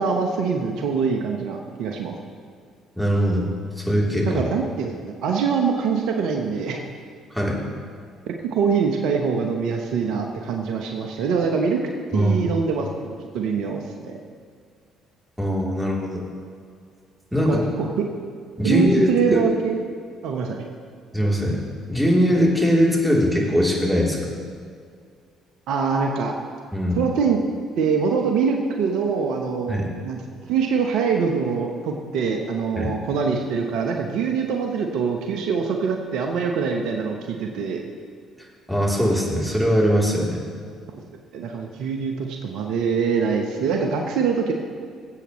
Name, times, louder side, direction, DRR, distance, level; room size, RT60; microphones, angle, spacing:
voice 1, 0.0-2.1 4.3-6.8 8.3-11.8 12.1-14.1 17.4-18.0 18.6-19.8 20.2-20.6 25.7-26.3 26.9-27.4 27.8-30.2 30.5-37.8 41.3-44.5, right 5 dB, 70° right, 2 dB, 1.0 m, -24 dB
voice 2, 3.0-3.5 3.8-4.4 7.3-7.6 12.1-12.4 15.4-16.2 17.3-17.6 18.6-19.4 21.1-21.6 21.9-24.3 26.7-27.0 29.7-29.9 32.8-32.9 38.7-40.4, equal, 5° right, -4 dB, 3.4 m, -21 dB
20.0 x 8.2 x 3.2 m, 2.1 s
hypercardioid pair, 55°, 0 cm